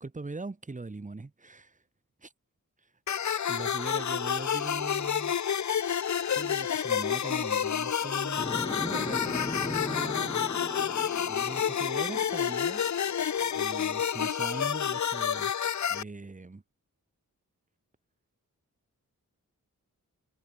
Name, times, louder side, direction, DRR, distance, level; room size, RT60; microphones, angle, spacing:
voice 1, 0.0-1.8 2.2-2.3 3.5-5.4 6.3-10.4 11.3-12.9 13.4-15.5 15.9-16.6, right 3 dB, 20° right, 1.3 m, -40 dB
sound 1, 3.1-16.0, left 8 dB, 55° left, 0.7 m, -29 dB
sound 2, 8.4-14.4, left 2 dB, 15° left, 0.7 m, -38 dB
wide cardioid pair, 110°, 34 cm